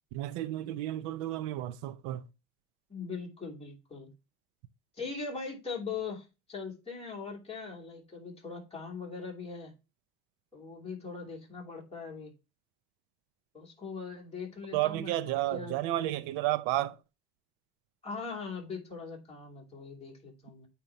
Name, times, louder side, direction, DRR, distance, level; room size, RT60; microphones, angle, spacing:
voice 1, 0.1-2.3 14.7-17.0, right 15 dB, 90° right, 0.6 m, -32 dB
voice 2, 2.9-4.1 5.0-9.7 10.5-12.3 13.5-15.8 18.0-20.7, left 5 dB, 15° left, 2.9 m, -41 dB
9.0 x 3.0 x 4.2 m
cardioid pair, 125°, 34 cm